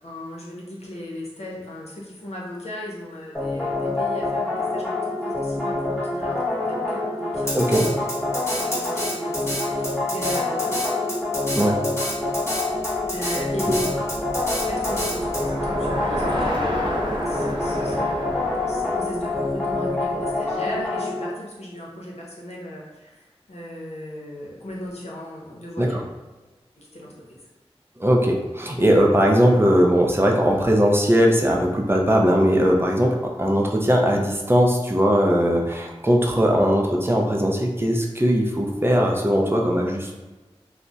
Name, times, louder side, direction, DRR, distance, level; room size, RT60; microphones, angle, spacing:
voice 1, 0.0-7.7 8.6-10.8 12.9-13.8 14.7-26.0 26.8-27.4, left 1 dB, 80° left, -4 dB, 0.7 m, -37 dB
sound 1, 3.3-21.3, left 2 dB, ahead, 1.0 m, -26 dB
Drum kit, 7.5-15.4, equal, 25° left, 1.1 m, -29 dB
voice 2, 7.5-7.9 11.5-11.8 13.7-13.8 25.8-25.9 28.0-40.2, equal, 20° right, 0 dB, 0.5 m, -19 dB
Bicycle, 12.3-20.5, equal, 45° right, 0.9 m, -31 dB
2.4 x 2.0 x 3.8 m, 1.2 s
wide cardioid pair, 45°, 11 cm